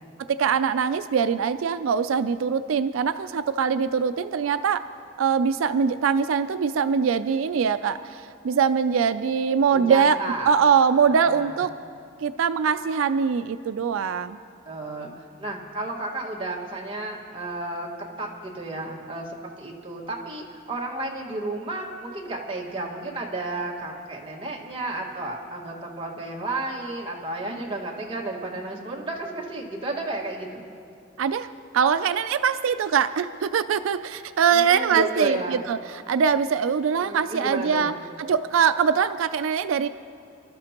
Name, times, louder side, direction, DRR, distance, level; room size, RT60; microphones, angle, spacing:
voice 1, 0.2-4.9 5.2-10.2 10.5-11.7 12.2-14.4 31.2-37.9 38.2-39.9, right 6 dB, 90° right, 12 dB, 0.4 m, -23 dB
voice 2, 9.7-10.6 11.1-11.6 14.6-15.1 15.4-17.9 18.2-19.3 19.6-30.7 34.5-35.6 37.0-37.9, right 2 dB, 25° right, -2 dB, 1.7 m, -32 dB
27.0 x 13.0 x 2.9 m, 2.4 s
head